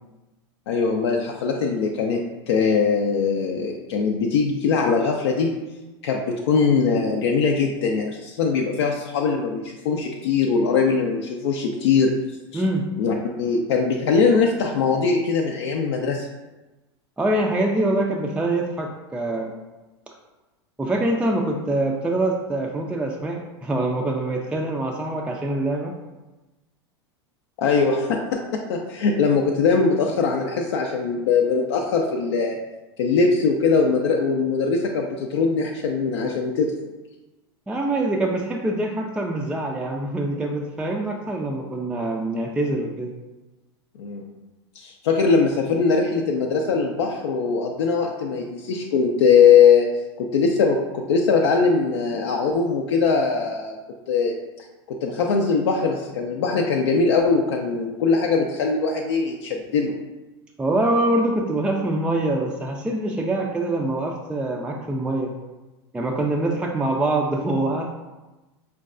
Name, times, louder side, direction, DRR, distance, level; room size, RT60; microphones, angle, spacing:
voice 1, 0.7-5.5 6.0-12.1 12.5-12.6 13.0-16.3 27.6-32.6 33.0-36.7 44.0-44.2 44.8-49.9 50.2-53.8 54.1-54.3 54.9-60.0, left 5 dB, 75° left, 0 dB, 0.4 m, -21 dB
voice 2, 12.5-12.9 17.2-19.5 20.8-25.9 37.7-43.1 60.6-65.3 65.9-67.9, right 2 dB, 10° right, 0 dB, 0.3 m, -24 dB
5.1 x 2.2 x 2.4 m, 1.1 s
hypercardioid pair, 100°, 14 cm